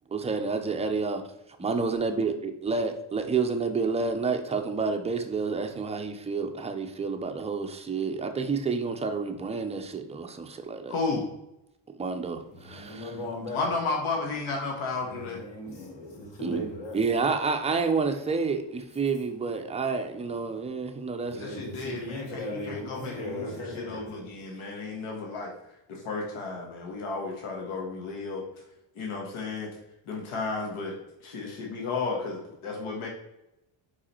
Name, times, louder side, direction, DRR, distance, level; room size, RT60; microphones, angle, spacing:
voice 1, 0.1-1.2 1.6-10.9 12.0-13.1 16.4-16.6 16.9-21.4, right 4 dB, 15° right, 5 dB, 0.3 m, -29 dB
voice 2, 10.9-11.2 13.5-15.4 21.4-23.5 23.7-25.5 25.9-28.4 28.9-29.7 30.1-31.0 31.2-33.1, left 3 dB, 85° left, 0 dB, 1.6 m, -33 dB
voice 3, 12.5-13.7 15.0-17.0 21.3-24.3, left 1 dB, 60° left, -1 dB, 2.4 m, -37 dB
5.0 x 4.8 x 4.3 m, 0.87 s
cardioid pair, 170°, 48 cm